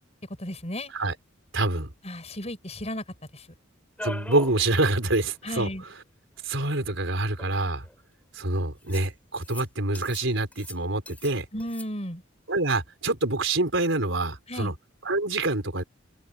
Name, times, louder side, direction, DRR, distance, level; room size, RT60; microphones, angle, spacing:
voice 1, 0.4-0.9 2.0-3.0 3.3-3.5 5.4-5.8 11.5-12.2 14.5-14.7, left 1 dB, 35° left, 5.1 m, -34 dB
voice 2, 1.5-1.9 4.0-5.7 6.4-7.8 8.3-11.4 12.5-14.7 15.0-15.8, right 2 dB, 70° right, 4.7 m, -26 dB
sound 1, 4.0-4.6 5.0-5.1 5.3-5.4 6.5-6.6 7.3-7.9 8.9-9.1 9.4-9.6 9.9-10.3 10.5-11.3 11.6-11.9, left 1 dB, 10° left, 5.2 m, -40 dB
open air
head